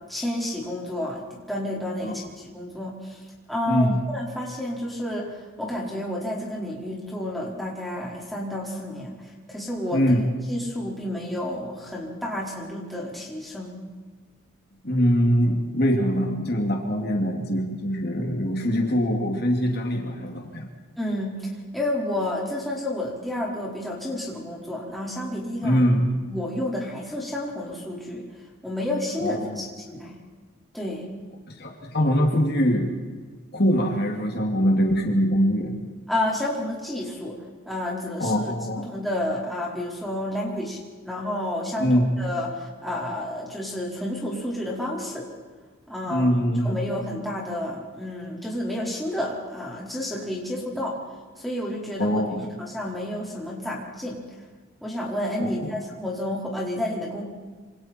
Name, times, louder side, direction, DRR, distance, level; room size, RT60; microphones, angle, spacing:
voice 1, 0.1-10.0 10.5-13.9 21.0-25.8 26.3-28.3 28.6-30.2 30.7-31.1 36.1-37.4 37.6-38.4 38.9-40.8 41.0-45.3 45.9-46.3 46.6-51.0 51.4-52.2 52.7-54.2 54.8-57.2, left 1 dB, ahead, -5 dB, 4.8 m, -30 dB
voice 2, 3.7-4.0 9.9-10.2 14.8-20.7 25.6-26.1 29.2-29.6 31.5-32.9 33.5-35.8 38.2-38.9 41.8-42.1 46.1-46.8 52.0-52.4 55.4-55.8, equal, 45° left, 1 dB, 2.7 m, -23 dB
27.5 x 26.5 x 4.6 m, 1.5 s
head